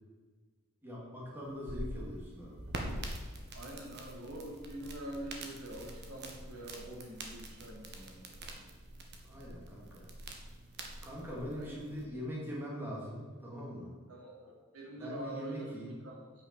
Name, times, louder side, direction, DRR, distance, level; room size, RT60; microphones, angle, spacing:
voice 1, 0.8-2.6 9.2-10.1 11.0-13.9 14.9-16.0, equal, 10° right, -5 dB, 2.6 m, -42 dB
sound 1, 1.4-12.0, right 1 dB, 50° right, 1.6 m, -45 dB
voice 2, 3.5-8.5 11.6-11.8 14.1-15.7 16.0-16.2, right 1 dB, 85° right, -3 dB, 3.3 m, -45 dB
9.0 x 6.4 x 7.0 m, 1.5 s
head